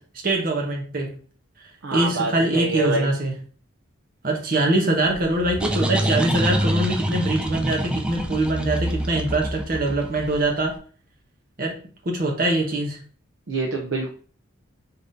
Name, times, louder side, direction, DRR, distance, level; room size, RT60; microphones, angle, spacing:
voice 1, 0.2-1.1 1.9-3.3 4.2-10.7 11.6-11.7 12.0-13.0, right 2 dB, 45° right, 0 dB, 0.9 m, -23 dB
voice 2, 1.8-3.1 13.5-14.1, right 3 dB, 70° right, 0 dB, 0.6 m, -26 dB
sound 1, 5.1-10.6, equal, 5° right, 0.3 m, -26 dB
3.8 x 3.6 x 2.7 m, 0.41 s
head